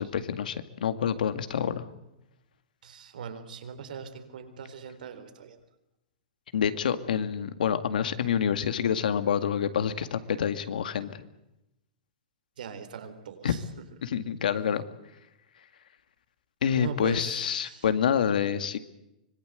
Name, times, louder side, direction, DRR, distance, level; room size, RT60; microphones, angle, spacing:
voice 1, 0.0-1.9 6.5-11.2 13.4-13.5 14.0-14.8 16.6-18.8, left 8 dB, 85° left, 11 dB, 2.1 m, -27 dB
voice 2, 2.8-5.6 12.6-13.6 16.7-17.9, right 7 dB, 80° right, 8 dB, 4.1 m, -40 dB
25.5 x 21.0 x 8.1 m, 0.90 s
supercardioid pair, 170°, 4 cm